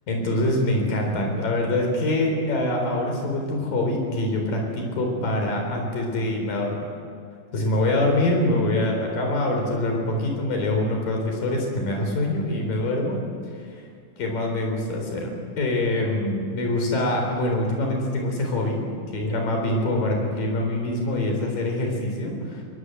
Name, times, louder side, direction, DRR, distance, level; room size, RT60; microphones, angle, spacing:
voice 1, 0.1-6.8 7.5-13.2 14.2-15.3 15.6-18.9 19.1-22.6, left 1 dB, 75° left, 2 dB, 5.6 m, -24 dB
22.5 x 19.5 x 8.0 m, 2.3 s
omnidirectional pair, 3.9 m